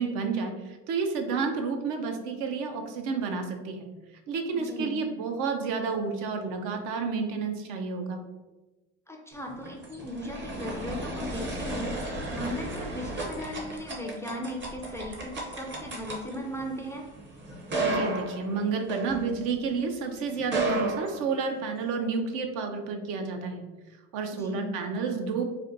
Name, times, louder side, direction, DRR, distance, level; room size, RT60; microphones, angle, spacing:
voice 1, 0.0-3.9 4.3-8.2 17.8-23.6 24.1-25.4, right 5 dB, 65° right, 5 dB, 0.6 m, -30 dB
voice 2, 4.5-5.0 9.1-17.1 24.3-24.7, left 1 dB, 10° left, 0 dB, 0.4 m, -37 dB
sound 1, 9.4-19.8 20.4-21.9, right 2 dB, 35° right, 0.8 m, -34 dB
4.2 x 2.2 x 2.6 m, 1.1 s
supercardioid pair, 100°, 32 cm